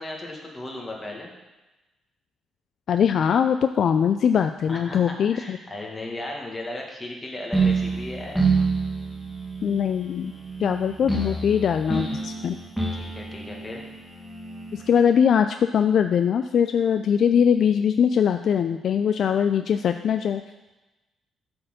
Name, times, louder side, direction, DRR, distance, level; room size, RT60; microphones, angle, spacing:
voice 1, 0.0-1.3 4.7-8.5 12.9-13.9, left 1 dB, 20° left, 0 dB, 1.8 m, -36 dB
voice 2, 2.9-5.6 9.6-10.3 10.6-12.6 14.7-20.4, left 8 dB, 60° left, 8 dB, 0.3 m, -21 dB
sound 1, 7.5-15.0, right 4 dB, 5° right, 1.4 m, -28 dB
7.8 x 4.4 x 6.5 m, 1.1 s
cardioid pair, 90°, 0 cm